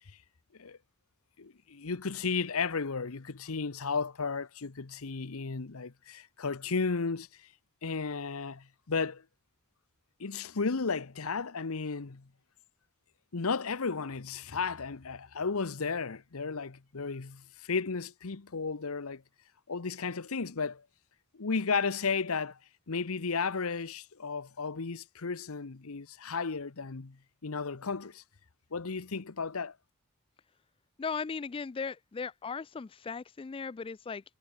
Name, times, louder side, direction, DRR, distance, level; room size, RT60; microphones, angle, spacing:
voice 1, 1.4-7.3 7.8-9.2 10.2-12.3 13.3-19.2 19.7-20.8 21.3-22.6 22.9-28.2 28.7-29.8, left 4 dB, 75° left, 0.9 m, -34 dB
voice 2, 31.0-34.2, left 5 dB, 25° left, 0.3 m, -37 dB
head